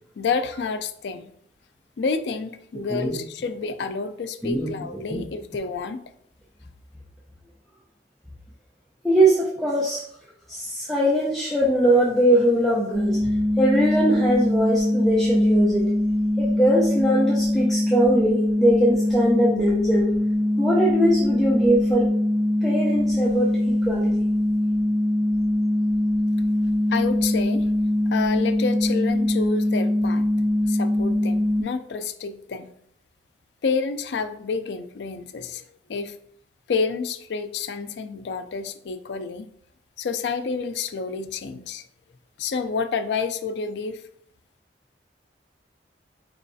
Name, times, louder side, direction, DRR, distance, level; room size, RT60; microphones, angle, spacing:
voice 1, 0.2-1.3 2.0-6.0 26.9-27.7 28.1-30.3 30.7-32.7 33.6-35.6 35.9-36.2 36.7-39.5 40.0-41.8 42.4-44.0, left 5 dB, 70° left, 9 dB, 0.4 m, -29 dB
voice 2, 2.7-3.2 4.4-4.7 5.1-5.2 9.0-10.0 10.5-15.9 16.4-20.1 20.6-22.1 22.6-24.1, right 1 dB, ahead, -6 dB, 0.6 m, -21 dB
sound 1, 12.9-31.6, left 1 dB, 75° right, 0.8 m, -22 dB
4.5 x 3.1 x 2.7 m, 0.69 s
head